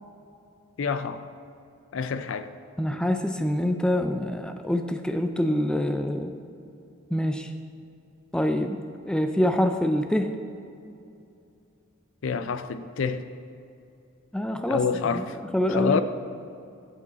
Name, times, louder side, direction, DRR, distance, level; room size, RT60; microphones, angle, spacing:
voice 1, 0.8-1.2 1.9-2.5 12.2-13.3 14.7-15.4 15.7-16.0, left 5 dB, 75° left, 12 dB, 0.4 m, -27 dB
voice 2, 2.8-6.3 7.1-7.5 8.3-10.3 14.3-14.8 15.1-15.2 15.5-16.0, left 1 dB, 5° left, 6 dB, 0.3 m, -25 dB
8.2 x 7.3 x 4.1 m, 2.6 s
head